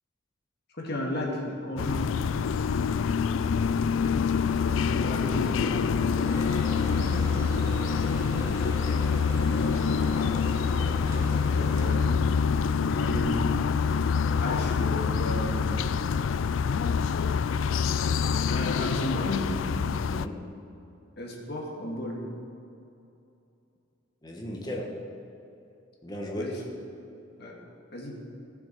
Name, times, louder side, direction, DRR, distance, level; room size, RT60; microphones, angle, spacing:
voice 1, 0.8-2.1 4.6-5.9 8.3-8.6 9.3-9.9 11.5-12.3 12.8-13.6 14.4-15.8 18.5-19.5 21.2-22.3 24.6-24.8 26.3-26.6 27.4-27.6 27.9-28.2, left 1 dB, 55° left, -1 dB, 2.3 m, -34 dB
sound 1, 1.8-20.3, left 6 dB, 85° left, 0.4 m, -26 dB
sound 2, 6.2-12.0, equal, 15° right, 1.7 m, -41 dB
voice 2, 6.7-7.4 20.1-20.4 24.2-24.8 26.0-26.5, equal, 20° left, 0 dB, 1.6 m, -36 dB
16.0 x 7.3 x 6.0 m, 2.7 s
head